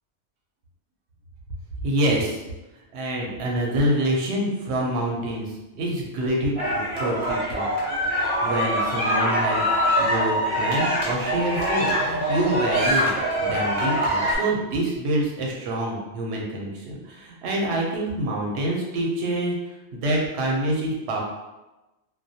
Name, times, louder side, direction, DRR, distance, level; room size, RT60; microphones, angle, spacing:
voice 1, 1.8-2.4 2.9-5.5 5.8-7.7 8.0-8.1 8.4-9.6 10.0-13.1 13.4-19.5 19.9-21.2, right 1 dB, 80° right, -2 dB, 0.9 m, -26 dB
sound 1, 6.6-14.4, equal, 40° right, 0.6 m, -24 dB
2.2 x 2.2 x 2.7 m, 1.0 s
omnidirectional pair, 1.1 m